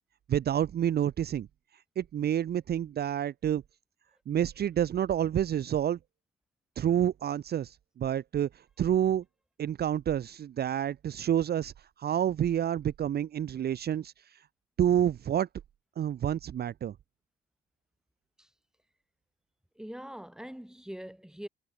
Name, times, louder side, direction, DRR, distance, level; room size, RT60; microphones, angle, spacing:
voice 1, 0.3-1.5 2.0-3.6 4.3-6.0 6.8-9.2 9.6-11.7 12.0-14.4 14.8-15.5 16.0-16.9, right 10 dB, 55° right, 0.7 m, -28 dB
voice 2, 19.8-21.5, equal, 5° right, 5.3 m, -43 dB
cardioid pair, 90°, 20 cm